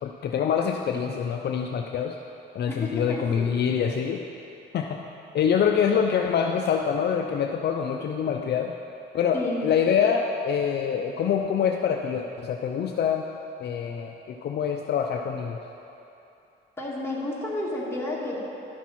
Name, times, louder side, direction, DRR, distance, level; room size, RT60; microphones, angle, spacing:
voice 1, 0.0-2.2 2.5-4.2 4.7-5.0 5.3-8.7 9.1-13.3 13.6-15.6, left 7 dB, 55° left, 2 dB, 0.5 m, -25 dB
voice 2, 2.7-3.5 9.3-9.7 16.8-18.4, left 2 dB, 10° left, -5 dB, 2.0 m, -31 dB
11.5 x 6.0 x 4.2 m, 2.9 s
cardioid pair, 90°, 20 cm